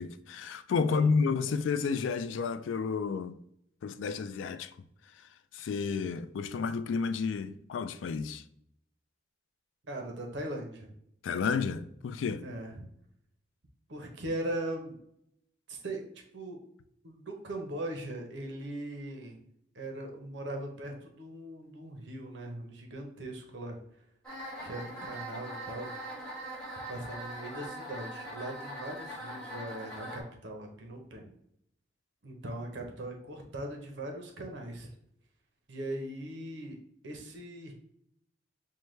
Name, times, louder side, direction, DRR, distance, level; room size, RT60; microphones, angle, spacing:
voice 1, 0.0-3.4 3.8-4.7 5.5-8.4 11.2-12.5, left 5 dB, 85° left, 0.3 m, -31 dB
voice 2, 0.8-1.3 9.9-10.9 12.4-12.9 13.9-15.0 15.7-16.0 16.3-16.6 17.0-19.4 19.7-23.8 24.6-26.4 26.9-31.3 32.2-34.9 35.7-36.8 37.0-37.7, right 1 dB, 75° right, 0.8 m, -40 dB
sound 1, 24.2-30.2, right 1 dB, 5° left, 1.4 m, -41 dB
5.6 x 2.2 x 3.2 m
head